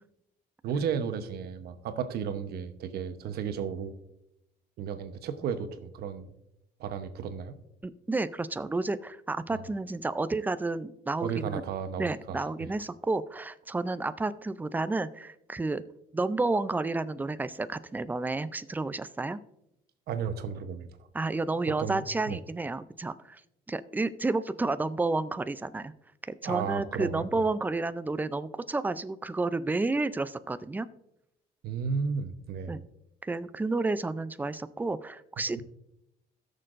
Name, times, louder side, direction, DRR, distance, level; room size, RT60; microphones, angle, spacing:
voice 1, 0.6-3.9 4.8-6.3 6.8-7.6 9.5-9.6 11.2-12.4 20.1-20.9 21.5-22.4 26.4-27.4 31.6-32.8 35.5-35.6, right 7 dB, 70° right, 9 dB, 1.0 m, -34 dB
voice 2, 7.8-11.6 12.0-15.8 16.1-19.4 21.1-23.4 23.7-25.9 26.4-30.9 32.7-32.8 33.2-35.6, right 3 dB, 10° right, 14 dB, 0.4 m, -31 dB
17.0 x 6.7 x 2.5 m, 0.84 s
cardioid pair, 110°, 17 cm